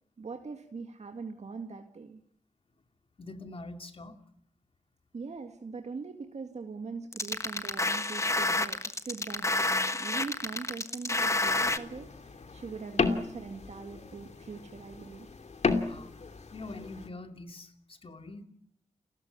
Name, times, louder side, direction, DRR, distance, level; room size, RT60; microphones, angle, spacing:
voice 1, 0.2-2.2 5.1-15.3, right 4 dB, 60° right, 4 dB, 2.1 m, -42 dB
voice 2, 3.2-4.2 15.7-16.1 16.5-18.4, left 2 dB, 50° left, 6 dB, 2.6 m, -44 dB
sound 1, 7.1-11.8, left 2 dB, 25° left, 1.3 m, -29 dB
sound 2, 11.5-17.1, left 4 dB, 65° left, 2.7 m, -34 dB
30.0 x 15.0 x 9.7 m, 0.70 s
wide cardioid pair, 120°, 13 cm